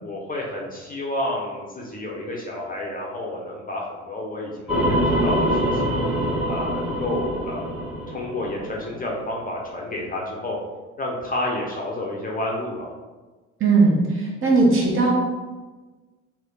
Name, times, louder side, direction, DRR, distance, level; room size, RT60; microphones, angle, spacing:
voice 1, 0.0-6.0 6.5-7.6 8.1-10.6 11.0-12.9, left 1 dB, 25° left, -2 dB, 0.8 m, -30 dB
sound 1, 4.7-9.1, equal, ahead, 1.0 m, -24 dB
voice 2, 13.6-15.1, right 3 dB, 35° right, -3 dB, 1.1 m, -18 dB
3.2 x 2.1 x 3.9 m, 1.2 s
hypercardioid pair, 60°, 37 cm